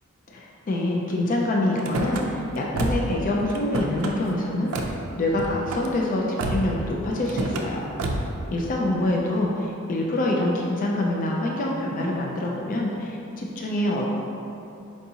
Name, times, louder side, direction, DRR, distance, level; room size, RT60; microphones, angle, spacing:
voice 1, 0.3-4.9 5.2-7.9 8.5-14.1, left 1 dB, 40° left, -2 dB, 0.3 m, -26 dB
Car / Slam, 1.8-2.2 2.7-3.2 3.5-4.1 4.7-5.0 5.3-5.9 6.4-6.8 7.3-7.7 8.0-8.4, right 2 dB, 85° right, 0.4 m, -28 dB
4.5 x 2.7 x 2.7 m, 2.7 s
head